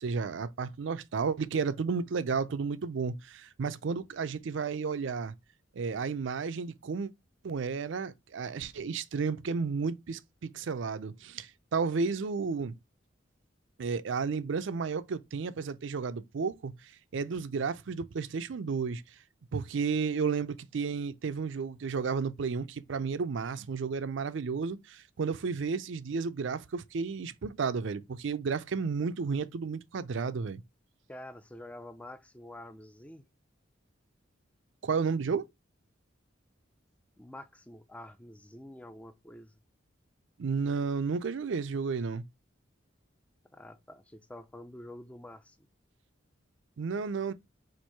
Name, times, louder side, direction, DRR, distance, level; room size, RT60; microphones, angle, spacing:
voice 1, 0.0-5.3 5.7-7.1 7.4-12.7 13.8-19.0 19.5-30.6 34.8-35.5 40.4-42.2 46.8-47.3, right 5 dB, 70° right, 0.4 m, -32 dB
voice 2, 31.1-33.3 37.2-39.5 43.5-45.7, left 1 dB, 5° left, 0.4 m, -47 dB
4.4 x 2.6 x 4.4 m
head